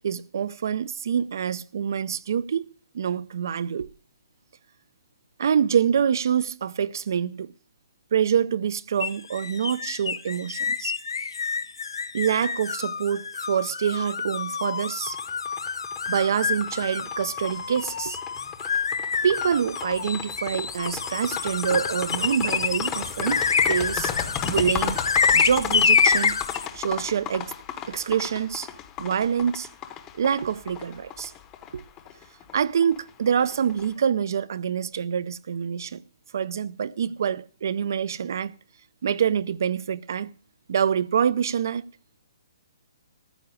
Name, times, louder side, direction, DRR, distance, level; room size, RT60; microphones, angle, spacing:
voice 1, 0.0-2.7 2.9-3.9 5.4-7.5 8.1-10.9 12.1-15.2 16.1-18.2 19.2-24.1 24.4-25.0 25.3-26.4 26.7-27.5 27.9-28.7 29.0-29.7 30.2-31.3 31.7-31.8 32.5-36.0 36.3-38.5 39.0-40.3 40.7-41.8, right 8 dB, 50° right, 0.5 m, -26 dB
sound 1, 9.0-26.7, left 5 dB, 85° left, 1.0 m, -27 dB
sound 2, 15.1-33.9, left 10 dB, 15° left, 0.8 m, -35 dB
14.0 x 6.0 x 9.6 m
hypercardioid pair, 175°, 2 cm